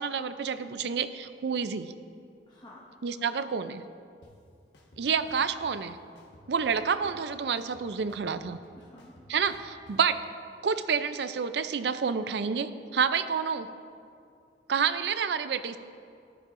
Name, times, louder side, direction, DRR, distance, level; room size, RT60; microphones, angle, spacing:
voice 1, 0.0-1.9 3.0-3.8 5.0-6.0 6.5-8.6 9.3-10.2 10.6-13.7 14.7-15.8, right 6 dB, 65° right, 12 dB, 0.4 m, -29 dB
voice 2, 2.5-3.7 8.7-9.2, left 1 dB, 25° left, -5 dB, 1.3 m, -53 dB
sound 1, 4.2-4.3 4.7-5.7 6.2-7.3 7.6-10.0, equal, 75° left, 1.3 m, -55 dB
13.5 x 11.5 x 2.5 m, 2.4 s
head